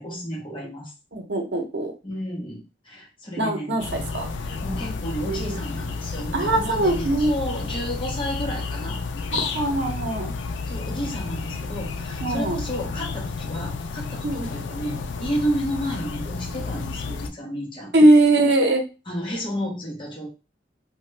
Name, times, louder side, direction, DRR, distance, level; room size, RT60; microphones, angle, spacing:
voice 1, 0.0-0.9 2.0-3.8 4.4-9.4 10.7-17.9 19.1-20.3, equal, 30° left, -2 dB, 0.9 m, -32 dB
voice 2, 1.1-1.9 3.4-4.3 6.3-7.3 9.4-10.3 12.2-12.6 14.2-14.5 17.9-18.8, right 2 dB, 75° right, 3 dB, 0.7 m, -20 dB
sound 1, 3.8-17.3, left 4 dB, 90° left, 0.3 m, -31 dB
2.8 x 2.2 x 3.2 m, 0.31 s
head